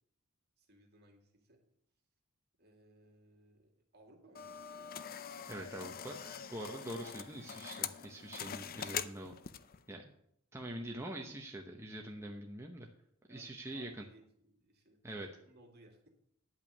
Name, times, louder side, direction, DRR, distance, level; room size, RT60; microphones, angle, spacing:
voice 1, 0.6-1.6 2.6-4.5 13.2-16.2, right 1 dB, 50° right, 2 dB, 2.5 m, -63 dB
sound 1, 4.3-9.8, left 8 dB, 45° left, 0.6 m, -44 dB
voice 2, 5.5-9.3 9.9-10.1 10.5-12.9 13.3-14.0 15.0-15.3, right 1 dB, 10° right, 1 dB, 0.9 m, -44 dB
10.5 x 5.7 x 8.5 m, 0.72 s
head